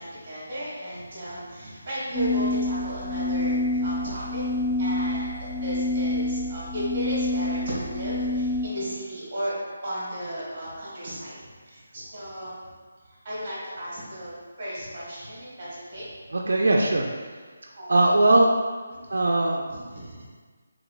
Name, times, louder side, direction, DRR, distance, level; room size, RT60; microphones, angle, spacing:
voice 1, 0.0-4.5 4.8-9.6 9.8-12.6 13.0-16.1 17.8-18.0 18.9-19.0 19.7-20.3, equal, 25° right, -8 dB, 1.2 m, -35 dB
sound 1, 2.1-8.7, left 1 dB, 15° left, 0.7 m, -27 dB
voice 2, 16.3-17.1 17.9-18.5 19.1-19.7, right 2 dB, 75° right, 0 dB, 0.3 m, -20 dB
3.9 x 3.0 x 2.3 m, 1.5 s
hypercardioid pair, 175°, 0 cm